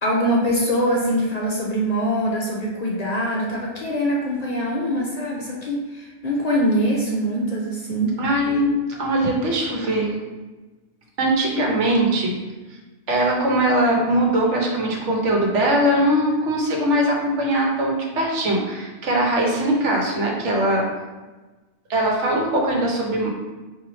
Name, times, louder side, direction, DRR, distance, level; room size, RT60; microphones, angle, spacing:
voice 1, 0.0-8.2, equal, 45° left, -3 dB, 0.6 m, -23 dB
voice 2, 8.2-10.1 11.2-12.3 13.1-20.9 21.9-23.3, right 1 dB, 85° right, -1 dB, 1.2 m, -21 dB
4.9 x 2.7 x 3.1 m, 1.2 s
omnidirectional pair, 1.2 m